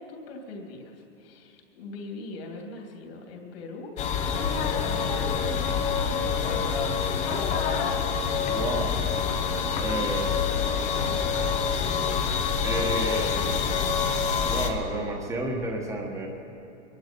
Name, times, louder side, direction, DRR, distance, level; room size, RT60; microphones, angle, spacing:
voice 1, 0.0-4.0 4.3-7.1 10.1-11.5 12.9-13.2, left 2 dB, 55° left, 1 dB, 3.0 m, -43 dB
sound 1, 4.0-14.7, left 6 dB, 20° left, 0.8 m, -26 dB
voice 2, 8.5-9.0 9.8-10.4 12.6-13.4 14.4-16.3, right 1 dB, 10° right, 0 dB, 1.4 m, -31 dB
22.5 x 11.5 x 5.4 m, 2.7 s
hypercardioid pair, 150°, 36 cm